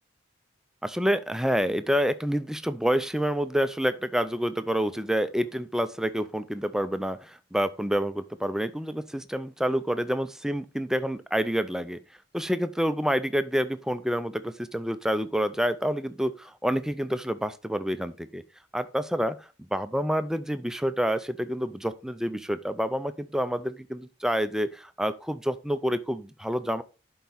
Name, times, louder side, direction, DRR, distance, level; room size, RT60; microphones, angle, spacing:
voice 1, 0.8-12.0 12.3-18.4 18.7-19.4 19.7-26.8, equal, 5° right, 0.4 m, -28 dB
11.5 x 4.7 x 4.0 m
head